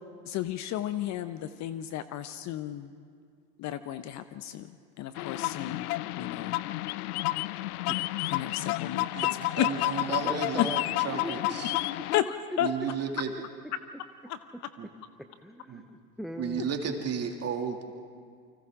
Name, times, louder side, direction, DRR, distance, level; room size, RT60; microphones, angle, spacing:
voice 1, 0.2-2.9 3.6-6.6 8.3-9.1 9.6-10.0 10.6-10.7 12.1-12.7 14.3-14.4, left 12 dB, 35° left, 12 dB, 0.8 m, -33 dB
sound 1, 5.2-12.2, left 17 dB, 65° left, 0.6 m, -31 dB
voice 2, 9.6-11.7 12.6-13.3 14.8-14.9 15.7-15.8 16.4-17.8, right 7 dB, 30° right, 3 dB, 2.7 m, -33 dB
voice 3, 10.1-10.9 11.2-11.5 15.2-16.7, equal, ahead, 7 dB, 0.5 m, -40 dB
29.0 x 25.0 x 3.8 m, 2.1 s
hypercardioid pair, 90°, 49 cm